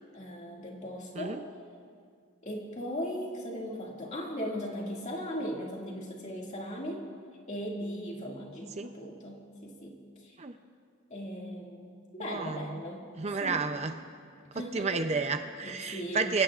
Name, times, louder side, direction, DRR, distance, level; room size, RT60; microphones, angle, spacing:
voice 1, 0.1-1.4 2.4-7.1 7.5-10.4 11.1-13.1 13.4-13.6 14.5-15.0 15.6-16.3, equal, 35° left, -2 dB, 2.2 m, -38 dB
voice 2, 12.2-12.8 13.2-14.0 14.5-16.4, right 4 dB, 30° right, 7 dB, 0.5 m, -31 dB
27.5 x 16.5 x 2.5 m, 2.2 s
head